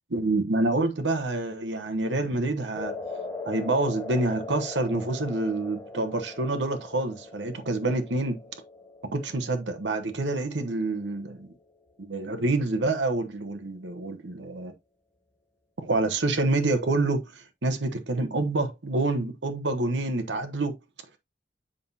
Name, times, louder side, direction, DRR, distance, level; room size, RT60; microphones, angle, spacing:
voice 1, 0.1-2.9 3.5-8.4 9.1-11.5 12.0-14.7 15.8-20.8, right 2 dB, 90° right, 1.1 m, -27 dB
sound 1, 2.7-11.1, left 3 dB, 15° left, 1.3 m, -40 dB
7.6 x 5.5 x 2.7 m
head